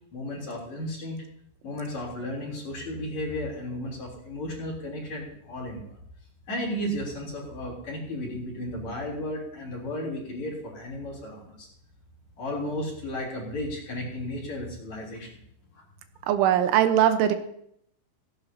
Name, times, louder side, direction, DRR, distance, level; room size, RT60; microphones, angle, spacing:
voice 1, 0.1-1.2 1.6-5.8 6.5-11.7 12.4-15.3, left 1 dB, 40° left, -3 dB, 4.2 m, -34 dB
voice 2, 16.3-17.3, right 10 dB, 85° right, 8 dB, 3.4 m, -20 dB
17.0 x 17.0 x 2.8 m, 0.70 s
omnidirectional pair, 5.4 m